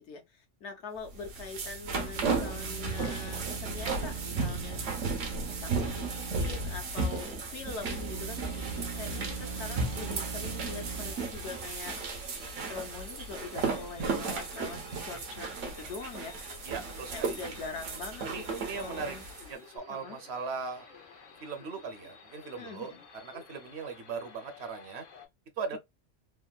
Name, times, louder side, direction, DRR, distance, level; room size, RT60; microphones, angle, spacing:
voice 1, 0.0-4.8 5.5-8.5 9.0-12.0 12.7-16.4 17.1-19.2 19.9-20.2 22.6-23.0, left 4 dB, 65° left, 1.0 m, -43 dB
sound 1, 1.1-19.5, right 4 dB, 85° right, 1.2 m, -35 dB
sound 2, 2.1-7.0 7.6-11.1, right 6 dB, 25° left, 0.6 m, -41 dB
sound 3, 8.3-25.3, left 5 dB, 90° left, 1.2 m, -53 dB
voice 2, 16.6-17.4 18.2-19.2 19.5-20.9 21.4-25.0 25.6-25.8, right 5 dB, 65° right, 0.9 m, -39 dB
3.4 x 2.2 x 2.2 m
omnidirectional pair, 1.3 m